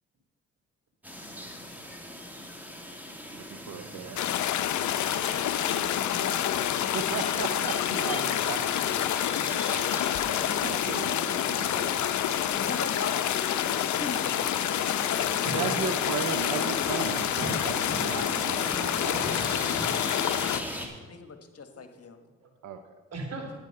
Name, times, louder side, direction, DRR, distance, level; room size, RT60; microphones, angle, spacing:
sound 1, 1.0-20.9, equal, 5° right, 2.3 m, -39 dB
voice 1, 3.3-4.3 6.9-8.7 10.5-11.9 15.5-19.5 19.8-20.0 22.6-23.0, right 6 dB, 70° right, 8 dB, 0.8 m, -36 dB
sound 2, 4.2-20.6, left 11 dB, 70° left, 0.6 m, -28 dB
voice 2, 5.6-6.2 15.4-15.7 21.7-21.8 22.4-22.5 23.1-23.5, right 2 dB, 55° right, 2 dB, 3.3 m, -39 dB
voice 3, 6.2-6.8 12.6-14.4 14.8-16.1 21.0-22.2, left 5 dB, 50° left, 7 dB, 1.4 m, -38 dB
10.5 x 9.0 x 5.3 m, 1.2 s
supercardioid pair, 50°, 31 cm